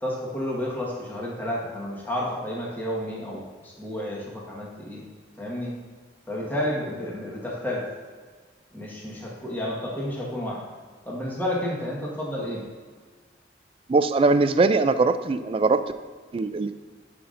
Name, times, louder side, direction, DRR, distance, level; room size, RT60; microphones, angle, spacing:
voice 1, 0.0-5.1 5.4-5.7 6.3-7.9 8.7-10.7 11.0-12.6, left 1 dB, 10° left, -4 dB, 1.4 m, -31 dB
voice 2, 13.9-15.8 16.3-16.8, right 3 dB, 30° right, 11 dB, 0.3 m, -21 dB
11.0 x 5.6 x 2.5 m, 1.5 s
head